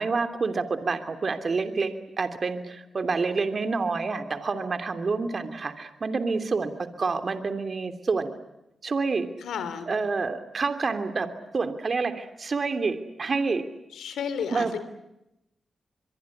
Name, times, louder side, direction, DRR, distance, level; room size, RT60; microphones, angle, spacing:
voice 1, 0.0-6.7 7.0-8.3 8.8-9.3 9.9-11.3 11.5-13.7 14.5-14.7, right 4 dB, 55° right, 8 dB, 3.0 m, -28 dB
voice 2, 9.4-9.9 13.9-14.8, left 7 dB, 85° left, 12 dB, 3.2 m, -32 dB
25.0 x 23.0 x 9.9 m, 0.88 s
supercardioid pair, 50°, 0 cm